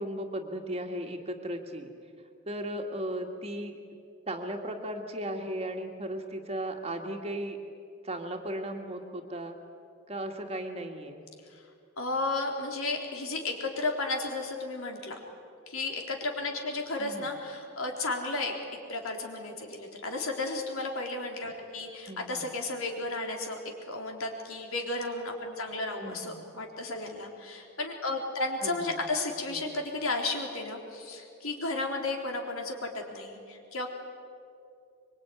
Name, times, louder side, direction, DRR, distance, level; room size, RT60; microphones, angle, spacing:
voice 1, 0.0-1.9 2.5-3.8 4.3-7.6 8.0-9.6 10.1-11.2 17.0-17.3 22.1-22.5 26.0-26.4 28.6-29.0 29.5-29.7, right 1 dB, 25° right, 3 dB, 2.1 m, -36 dB
voice 2, 12.0-15.2 15.7-18.5 18.9-23.6 23.9-33.9, left 2 dB, 70° left, 2 dB, 3.9 m, -33 dB
25.0 x 23.5 x 9.5 m, 2.5 s
head